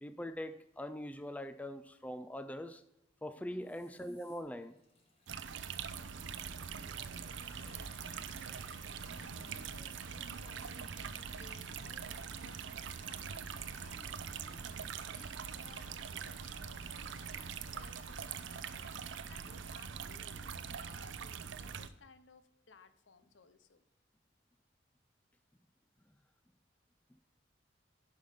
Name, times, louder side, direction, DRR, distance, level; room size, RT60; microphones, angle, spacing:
voice 1, 0.0-2.8 3.2-4.8, left 1 dB, 10° left, 11 dB, 0.3 m, -42 dB
voice 2, 3.3-3.8 5.8-23.8, left 3 dB, 80° left, 11 dB, 0.8 m, -60 dB
sound 1, 3.6-19.7, left 2 dB, 30° left, 1.7 m, -61 dB
sound 2, 5.3-21.9, right 7 dB, 80° right, 0.5 m, -43 dB
10.5 x 5.6 x 5.0 m, 0.85 s
head